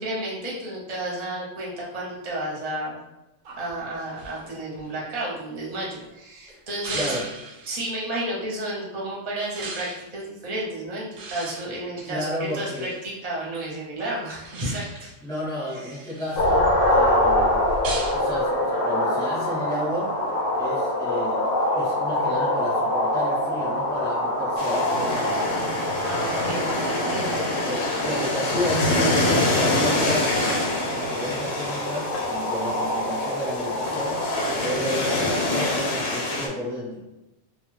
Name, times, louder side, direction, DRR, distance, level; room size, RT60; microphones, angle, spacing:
voice 1, 0.0-3.0 3.6-7.1 7.7-15.1 15.8-16.0 26.0-27.5, right 1 dB, 40° right, -5 dB, 0.7 m, -32 dB
sound 1, 3.4-6.1 6.8-7.8 9.6-10.1 11.2-13.0 14.4-15.1 15.6-16.6 17.8-18.2, right 3 dB, 90° right, 1.0 m, -38 dB
voice 2, 6.9-7.2 12.1-12.9 15.2-17.6 18.1-20.1 20.6-21.4 21.7-25.4 27.6-30.4 30.9-34.2 34.6-37.0, equal, 5° left, -8 dB, 0.8 m, -32 dB
sound 2, 16.4-34.8, left 1 dB, 85° left, 1.0 m, -25 dB
sound 3, 24.6-36.5, left 2 dB, 65° left, 0.8 m, -26 dB
2.3 x 2.3 x 3.1 m, 0.98 s
omnidirectional pair, 1.3 m